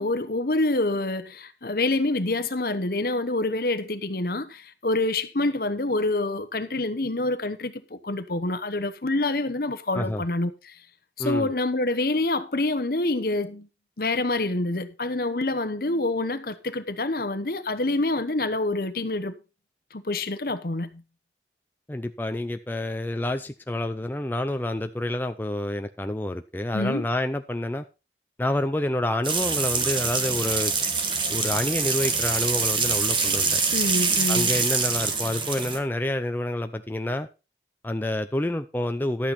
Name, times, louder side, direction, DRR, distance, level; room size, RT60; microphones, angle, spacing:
voice 1, 0.0-10.8 11.2-13.7 14.0-19.4 19.9-21.0 26.7-27.1 33.7-34.6, left 2 dB, 55° left, 1.0 m, -27 dB
voice 2, 21.9-27.8 28.4-30.7 31.3-33.6 34.3-37.3 37.8-39.3, left 1 dB, 10° left, 0.5 m, -28 dB
sound 1, 29.2-35.8, right 5 dB, 25° right, 1.4 m, -25 dB
12.0 x 8.7 x 4.2 m
head